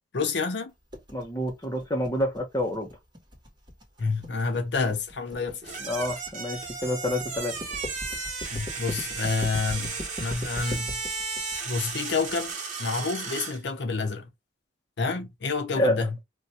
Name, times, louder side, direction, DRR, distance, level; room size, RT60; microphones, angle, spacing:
voice 1, 0.1-0.7 4.0-5.7 8.5-11.0 11.7-14.3 15.0-16.2, left 4 dB, 60° left, 0.6 m, -29 dB
sound 1, 0.9-12.5, left 1 dB, 25° right, 1.1 m, -40 dB
voice 2, 1.1-2.9 5.8-7.6 15.8-16.0, left 1 dB, 20° left, 0.7 m, -28 dB
sound 2, 5.6-13.6, right 4 dB, 40° right, 1.1 m, -34 dB
2.5 x 2.2 x 4.1 m
head